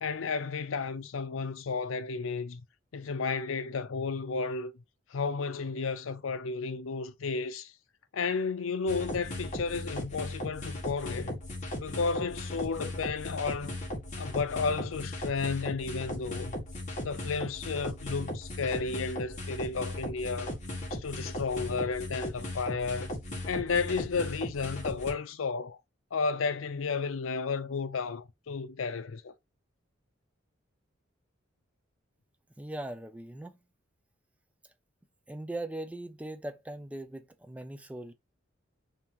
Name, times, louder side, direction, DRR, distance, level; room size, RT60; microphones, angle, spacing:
voice 1, 0.0-2.6 2.9-4.7 5.1-7.7 8.1-11.4 11.8-13.8 14.2-16.5 17.0-20.6 20.9-23.1 23.5-25.8 26.1-29.3, left 4 dB, 85° left, 0.5 m, -32 dB
sound 1, 8.9-25.1, left 1 dB, 40° left, 1.5 m, -37 dB
voice 2, 32.6-33.6 35.3-38.1, right 1 dB, 5° right, 0.4 m, -40 dB
5.3 x 2.9 x 2.8 m
head